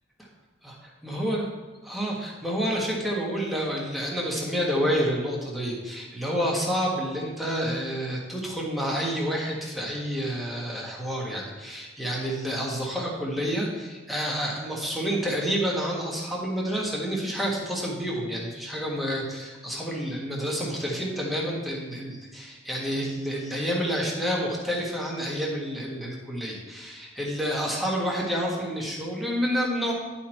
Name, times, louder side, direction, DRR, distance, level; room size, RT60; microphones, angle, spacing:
voice 1, 0.6-1.5 1.8-29.9, equal, ahead, -3 dB, 1.5 m, -29 dB
10.5 x 4.4 x 4.5 m, 1.3 s
head